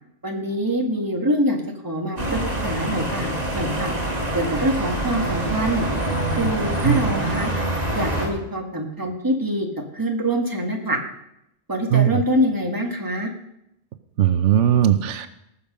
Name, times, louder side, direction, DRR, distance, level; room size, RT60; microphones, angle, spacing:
voice 1, 0.2-1.6 1.8-3.9 4.3-5.9 6.3-7.5 7.9-9.7 9.9-11.0 11.7-13.3, equal, 15° right, 2 dB, 1.8 m, -24 dB
sound 1, 2.2-8.3, right 1 dB, 35° right, 2.7 m, -25 dB
voice 2, 11.9-12.2 14.2-15.3, right 10 dB, 85° right, 11 dB, 1.0 m, -18 dB
19.0 x 6.8 x 5.3 m, 0.81 s
omnidirectional pair, 1.2 m